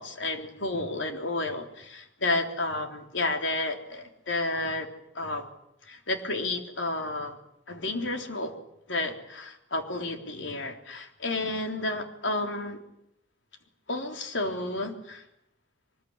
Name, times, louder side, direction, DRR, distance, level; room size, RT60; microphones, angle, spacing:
voice 1, 0.0-4.9 5.1-5.4 5.9-7.4 7.7-8.6 8.9-12.8 13.9-15.2, left 2 dB, 75° left, 5 dB, 3.7 m, -31 dB
23.5 x 21.5 x 9.8 m, 0.79 s
head